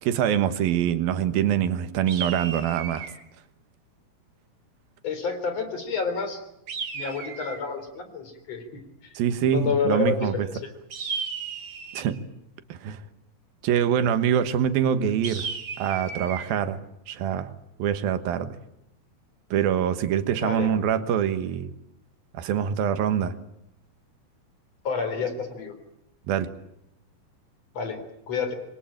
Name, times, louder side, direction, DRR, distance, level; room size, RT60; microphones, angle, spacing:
voice 1, 0.0-3.1 9.1-10.3 11.9-12.2 12.7-13.0 13.6-15.5 15.8-16.8 17.1-17.5 17.8-18.6 19.5-21.7 22.3-23.4 26.3-26.5, right 9 dB, 85° right, 11 dB, 3.2 m, -24 dB
sound 1, 2.1-3.2 6.7-7.7 10.9-12.2 15.2-16.5, right 5 dB, 45° right, 3.5 m, -34 dB
voice 2, 5.0-6.4 6.9-8.8 9.4-10.7 20.3-20.7 24.8-25.7 27.7-28.0 28.3-28.5, left 5 dB, 45° left, 9 dB, 4.5 m, -29 dB
27.0 x 22.5 x 8.9 m, 0.81 s
omnidirectional pair, 4.1 m